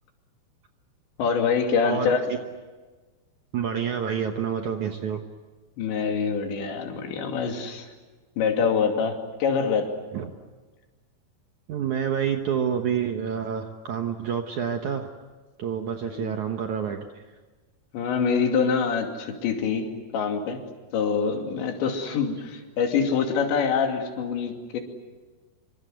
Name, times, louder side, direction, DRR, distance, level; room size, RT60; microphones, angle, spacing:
voice 1, 1.2-2.2 5.8-7.9 8.4-9.9 16.1-16.4 17.9-20.6 20.9-24.8, left 6 dB, 90° left, 3 dB, 4.9 m, -25 dB
voice 2, 1.8-2.4 3.5-5.2 10.1-10.3 11.7-15.1 15.6-17.2, right 8 dB, 70° right, 5 dB, 1.9 m, -28 dB
26.0 x 25.0 x 8.0 m, 1.3 s
omnidirectional pair, 5.0 m